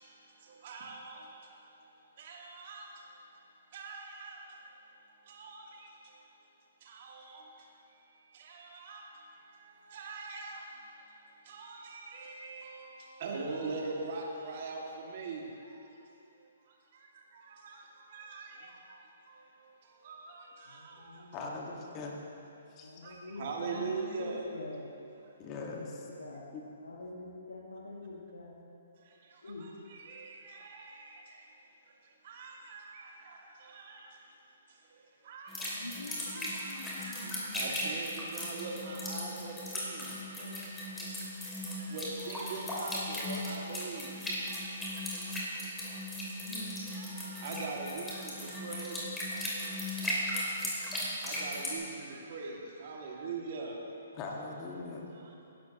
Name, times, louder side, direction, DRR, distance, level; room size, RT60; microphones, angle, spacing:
voice 1, 0.0-16.0 16.3-21.4 23.0-24.6 25.2-25.3 29.0-40.2 40.4-40.6 41.0-41.5 41.8-46.5 46.9-49.2 49.6-54.1 55.1-55.5, right 3 dB, 45° right, -1 dB, 2.2 m, -44 dB
voice 2, 20.7-21.6 22.8-23.9 24.2-24.8 25.5-25.8 26.2-26.6 26.8-28.6 29.4-29.6 35.7-37.6 39.3-39.4 40.4-40.6 46.4-46.7 47.0-47.2, left 2 dB, 75° left, -4 dB, 1.8 m, -46 dB
voice 3, 21.3-22.1 22.7-23.0 25.4-26.1 26.5-26.6 54.1-55.1, left 3 dB, 25° left, -1 dB, 1.7 m, -41 dB
sound 1, 35.5-51.8, left 1 dB, 10° left, 2.7 m, -37 dB
20.0 x 11.0 x 3.0 m, 2.7 s
figure-of-eight pair, 130°, 0 cm